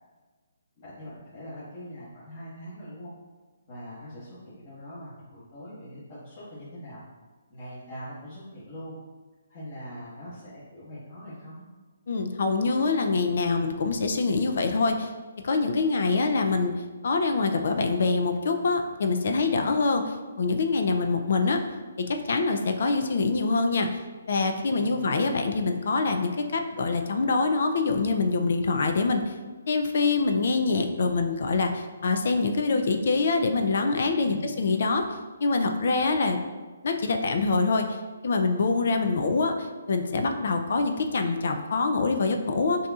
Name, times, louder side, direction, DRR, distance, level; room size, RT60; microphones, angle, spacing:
voice 1, 0.8-3.1 3.7-7.0 7.5-9.0 9.5-11.6 24.7-25.2 34.2-34.5, equal, 40° left, -12 dB, 1.4 m, -42 dB
voice 2, 12.1-15.1 15.4-16.7 17.0-21.6 22.0-24.0 24.3-29.3 29.7-35.0 35.4-36.4 36.8-38.0 38.2-42.9, left 3 dB, 60° left, 6 dB, 0.4 m, -25 dB
6.3 x 2.8 x 2.4 m, 1.3 s
hypercardioid pair, 155°, 0 cm